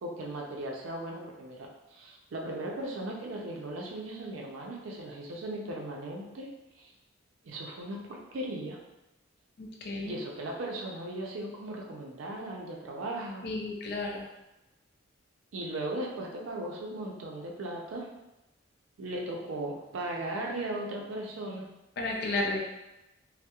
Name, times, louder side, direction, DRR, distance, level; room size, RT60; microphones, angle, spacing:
voice 1, 0.0-6.5 6.8-6.9 7.4-8.8 10.0-13.6 15.5-18.1 19.0-21.7, right 1 dB, 85° right, -1 dB, 0.4 m, -37 dB
voice 2, 9.6-10.2 13.4-14.3 22.0-22.6, left 2 dB, 55° left, 0 dB, 0.4 m, -32 dB
2.3 x 2.0 x 2.8 m, 0.95 s
head